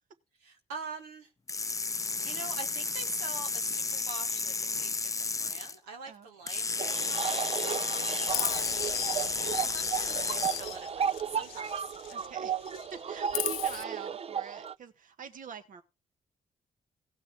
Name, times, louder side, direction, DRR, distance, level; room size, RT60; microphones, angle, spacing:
voice 1, 0.4-1.3 2.2-7.4 8.3-8.9 9.4-11.9, right 4 dB, 85° right, 1.3 m, -44 dB
sound 1, 1.5-5.7 6.5-10.8, left 4 dB, 20° left, 0.5 m, -32 dB
sound 2, 6.8-14.7, right 8 dB, 40° right, 0.5 m, -34 dB
voice 2, 7.7-8.0 9.6-9.7 12.1-15.8, right 6 dB, 65° right, 1.5 m, -46 dB
Chirp tweet, 8.3-12.3 12.6-13.8, left 16 dB, 85° left, 0.5 m, -38 dB
17.5 x 6.0 x 4.5 m
hypercardioid pair, 45°, 15 cm